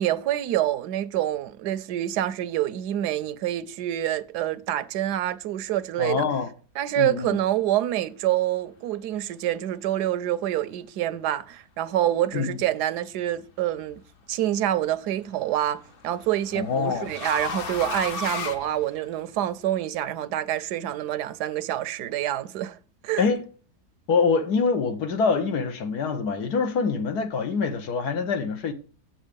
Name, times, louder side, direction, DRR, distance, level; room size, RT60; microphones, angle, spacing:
voice 1, 0.0-6.3 6.8-14.0 14.3-22.8 23.0-23.3, right 12 dB, 85° right, 1.2 m, -27 dB
voice 2, 6.0-6.5 7.0-7.4 12.3-12.6 16.5-17.1 23.2-23.4 24.1-28.7, left 5 dB, 75° left, 1.7 m, -25 dB
sound 1, 13.5-14.0 15.4-19.4, left 4 dB, 50° left, 0.7 m, -35 dB
7.7 x 7.3 x 5.1 m
omnidirectional pair, 1.7 m